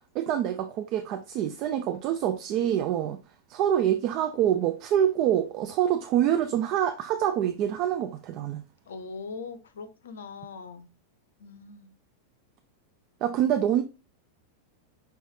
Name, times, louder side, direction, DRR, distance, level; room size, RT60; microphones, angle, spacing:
voice 1, 0.1-3.2 3.5-8.6 13.2-13.8, right 10 dB, 40° right, 0.3 m, -26 dB
voice 2, 8.9-10.9 11.4-11.9, left 4 dB, 65° left, 0.5 m, -41 dB
5.6 x 3.1 x 2.6 m
figure-of-eight pair, 90°, 0 cm